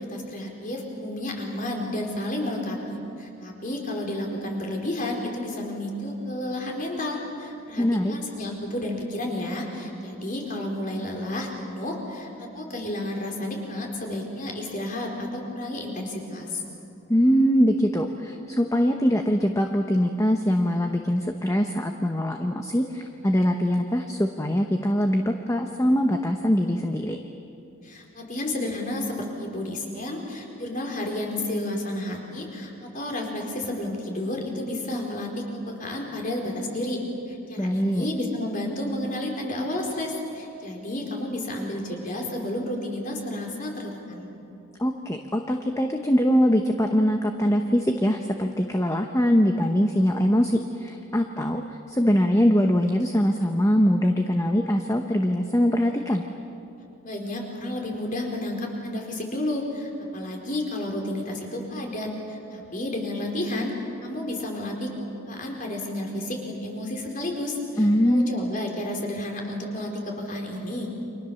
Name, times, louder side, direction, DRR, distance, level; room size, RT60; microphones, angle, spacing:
voice 1, 0.1-16.6 27.8-37.0 37.3-44.3 57.0-63.7 64.0-64.9 65.3-70.9, left 1 dB, 40° left, 1 dB, 4.4 m, -31 dB
voice 2, 7.8-8.1 17.1-27.2 37.6-38.1 44.8-56.2 67.8-68.5, equal, 15° left, 4 dB, 1.0 m, -22 dB
30.0 x 25.5 x 7.1 m, 2.8 s
head